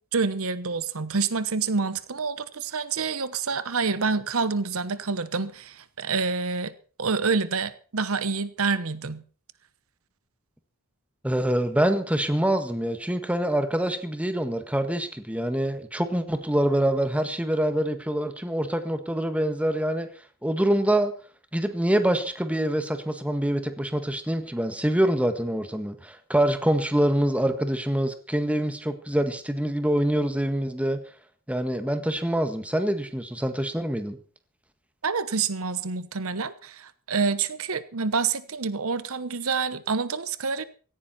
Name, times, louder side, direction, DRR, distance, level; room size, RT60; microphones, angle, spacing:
voice 1, 0.1-6.7 7.0-9.2 35.0-40.6, right 4 dB, 70° right, 1.0 m, -27 dB
voice 2, 11.2-20.1 20.4-21.1 21.5-31.0 31.5-34.2, right 1 dB, 5° right, 1.6 m, -25 dB
17.0 x 15.5 x 4.3 m
head